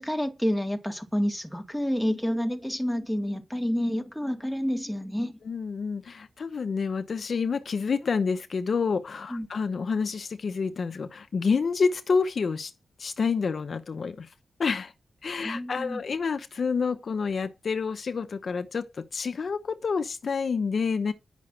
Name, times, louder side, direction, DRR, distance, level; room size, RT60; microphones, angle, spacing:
voice 1, 0.0-5.4 9.3-9.5 15.4-16.0, equal, ahead, 2.2 m, -29 dB
voice 2, 5.4-12.7 13.0-14.3 14.6-14.9 15.2-21.1, left 5 dB, 60° left, 0.8 m, -28 dB
10.5 x 6.0 x 8.9 m
wide cardioid pair, 105°, 0 cm